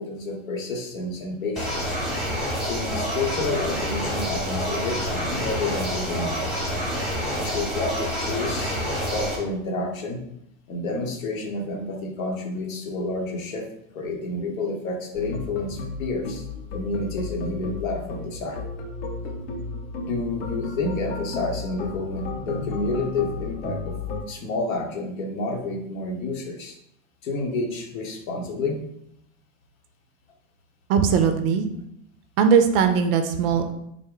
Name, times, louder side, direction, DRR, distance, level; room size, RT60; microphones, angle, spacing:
voice 1, 0.0-2.0 2.6-6.4 7.3-8.8 9.1-10.2 10.7-13.6 13.9-16.4 16.7-18.6 20.1-23.9 24.3-26.8 27.2-28.8, left 2 dB, 75° left, 1 dB, 1.0 m, -29 dB
sound 1, 1.6-9.4, equal, ahead, 0.8 m, -28 dB
sound 2, 15.1-24.2, left 4 dB, 50° left, 0.7 m, -33 dB
voice 2, 30.9-31.7 32.4-33.7, right 6 dB, 45° right, 7 dB, 0.4 m, -19 dB
3.6 x 2.1 x 3.7 m, 0.75 s
hypercardioid pair, 120°, 41 cm